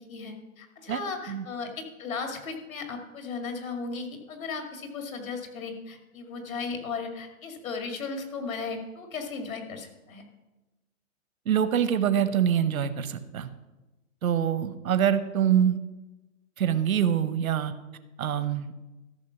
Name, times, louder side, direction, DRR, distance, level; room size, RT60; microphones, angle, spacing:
voice 1, 0.1-10.2, left 4 dB, 75° left, 4 dB, 2.3 m, -36 dB
voice 2, 11.5-13.5 14.2-15.8 16.6-17.7 18.2-18.7, right 9 dB, 80° right, 12 dB, 0.9 m, -25 dB
13.0 x 5.8 x 5.8 m, 1.1 s
hypercardioid pair, 165°, 41 cm